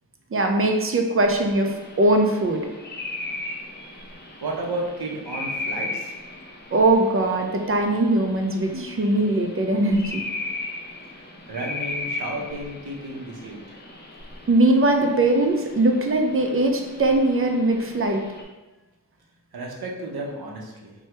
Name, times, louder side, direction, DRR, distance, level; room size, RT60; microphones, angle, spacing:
voice 1, 0.3-2.7 6.7-10.2 14.5-18.3, right 2 dB, 40° right, 3 dB, 0.4 m, -21 dB
sound 1, 1.2-18.4, left 2 dB, 30° left, 0.5 m, -37 dB
voice 2, 4.4-6.1 11.5-13.8 19.5-20.9, right 2 dB, 80° right, -1 dB, 0.6 m, -32 dB
2.9 x 2.2 x 3.2 m, 1.1 s
wide cardioid pair, 80°, 37 cm